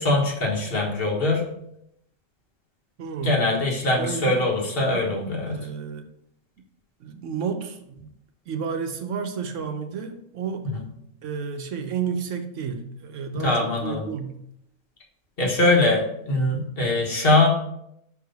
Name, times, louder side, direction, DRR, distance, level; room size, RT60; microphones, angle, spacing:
voice 1, 0.0-1.4 3.2-5.6 13.4-14.0 15.4-17.5, left 2 dB, 45° left, -1 dB, 1.5 m, -22 dB
voice 2, 3.0-3.4 4.0-4.5 5.5-6.1 7.0-8.1 8.5-10.7 11.2-14.4, right 6 dB, 70° right, 6 dB, 1.0 m, -31 dB
5.7 x 4.7 x 3.9 m, 0.76 s
omnidirectional pair, 1.4 m